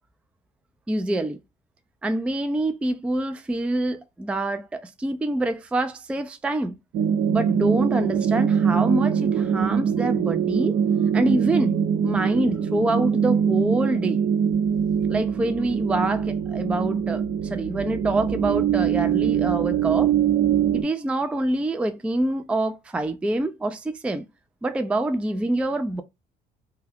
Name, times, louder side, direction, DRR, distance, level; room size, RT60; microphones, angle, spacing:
voice 1, 0.9-1.4 2.0-6.8 7.3-10.8 11.1-11.8 12.0-14.2 15.1-20.1 20.7-24.3 24.6-26.0, right 1 dB, 5° right, 0.3 m, -26 dB
sound 1, 6.9-20.8, right 8 dB, 75° right, 0.7 m, -23 dB
2.8 x 2.2 x 3.6 m
cardioid pair, 110°, 17 cm